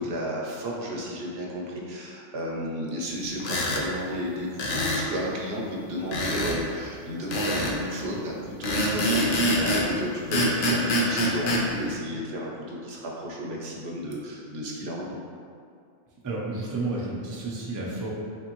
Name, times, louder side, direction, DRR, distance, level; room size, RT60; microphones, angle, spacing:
voice 1, 0.0-15.2, equal, 75° right, -3 dB, 0.9 m, -33 dB
sound 1, 3.4-3.8 4.6-5.1 6.1-6.6 7.3-7.8 8.6-9.9 10.3-11.6, equal, 60° left, 0.7 m, -25 dB
voice 2, 16.2-18.1, right 2 dB, 25° right, -4 dB, 0.4 m, -31 dB
3.6 x 3.3 x 2.9 m, 2.3 s
omnidirectional pair, 1.1 m